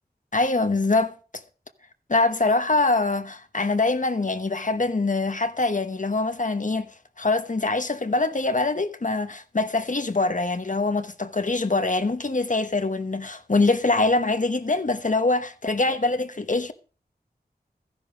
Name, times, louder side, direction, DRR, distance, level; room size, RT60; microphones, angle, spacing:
voice 1, 0.3-1.2 2.1-6.9 7.2-16.7, left 3 dB, 50° left, 1.1 m, -24 dB
14.0 x 10.5 x 5.0 m
wide cardioid pair, 65°, 17 cm